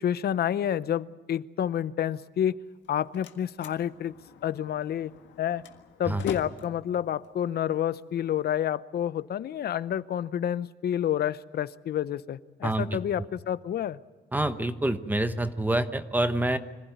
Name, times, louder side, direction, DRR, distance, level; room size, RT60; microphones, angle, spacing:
voice 1, 0.0-2.6 2.9-4.1 4.4-5.1 5.4-5.6 6.0-14.0, left 10 dB, 60° left, 17 dB, 0.7 m, -29 dB
Slam, 2.7-8.6, left 8 dB, 85° left, 1.7 m, -44 dB
voice 2, 12.6-13.0 14.3-16.6, right 1 dB, 10° right, 10 dB, 1.1 m, -27 dB
25.5 x 15.5 x 9.4 m, 1.3 s
cardioid pair, 125°, 19 cm